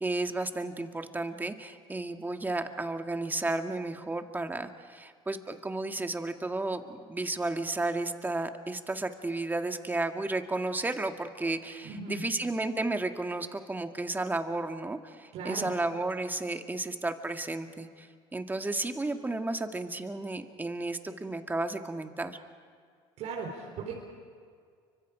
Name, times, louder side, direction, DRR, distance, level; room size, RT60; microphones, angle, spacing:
voice 1, 0.0-18.1 18.3-22.4, right 2 dB, 15° right, 6 dB, 1.9 m, -33 dB
voice 2, 11.8-12.2 15.3-15.7 23.2-23.9, right 4 dB, 60° right, -1 dB, 4.1 m, -37 dB
29.5 x 24.5 x 5.0 m, 2.1 s
supercardioid pair, 80°, 13 cm